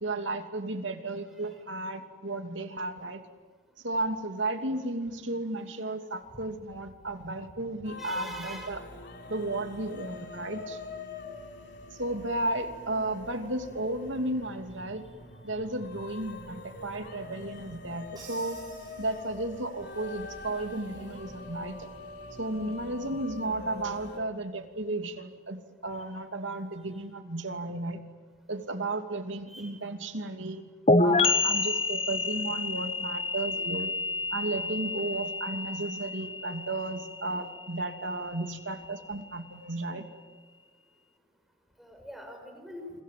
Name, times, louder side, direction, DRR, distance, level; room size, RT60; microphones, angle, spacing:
voice 1, 0.0-3.2 3.8-8.8 9.3-10.8 12.0-15.0 15.4-18.6 19.0-21.9 22.4-28.0 28.5-30.6 31.0-33.9 34.3-40.0, right 2 dB, 80° right, 6 dB, 2.8 m, -34 dB
sound 1, 7.8-24.2, left 3 dB, 60° left, 3.3 m, -44 dB
voice 2, 8.0-8.8 29.5-29.8 41.8-42.9, equal, ahead, 2 dB, 6.0 m, -43 dB
Crash cymbal, 18.2-19.9, right 3 dB, 20° right, 7.8 m, -51 dB
sound 2, 30.9-38.4, left 3 dB, 30° left, 1.1 m, -28 dB
28.5 x 26.0 x 7.7 m, 1.3 s
head